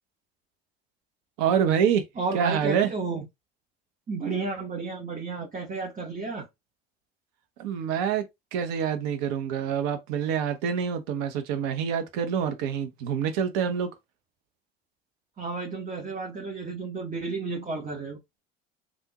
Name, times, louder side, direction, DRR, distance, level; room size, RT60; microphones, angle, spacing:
voice 1, 1.4-2.0 2.3-2.9 7.6-8.2 8.5-13.9, right 8 dB, 65° right, 0.9 m, -26 dB
voice 2, 2.2-3.3 4.1-6.5 15.4-18.2, right 3 dB, 25° right, 1.1 m, -32 dB
3.5 x 2.5 x 2.9 m
hypercardioid pair, 65°, 32 cm